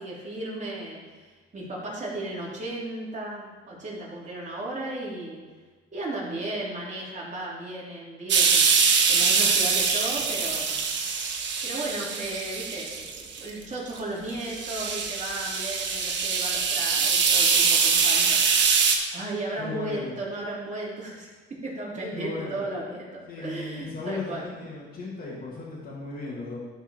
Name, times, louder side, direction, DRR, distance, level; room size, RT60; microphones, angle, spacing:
voice 1, 0.0-5.4 5.9-8.7 9.1-10.8 11.6-21.3 21.6-24.5, right 2 dB, 35° right, -5 dB, 3.0 m, -35 dB
sound 1, 8.3-13.5 14.0-14.1 14.5-19.0, right 5 dB, 60° right, 1.2 m, -23 dB
voice 2, 19.6-20.2 22.1-22.6 23.3-26.6, left 3 dB, 45° left, -6 dB, 2.3 m, -36 dB
11.5 x 4.6 x 4.8 m, 1.4 s
cardioid pair, 90°, 21 cm